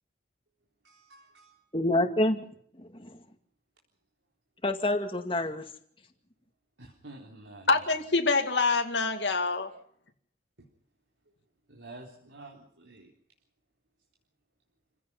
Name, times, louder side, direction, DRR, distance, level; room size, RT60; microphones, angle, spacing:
voice 1, 0.8-1.6 6.8-7.9 10.6-10.7 11.7-13.1, right 2 dB, 85° right, 3.8 m, -49 dB
voice 2, 1.7-2.5 2.8-3.2 4.6-5.7, left 1 dB, 30° left, 2.1 m, -27 dB
voice 3, 7.7-9.7, left 4 dB, 75° left, 2.2 m, -25 dB
28.5 x 16.5 x 5.6 m
head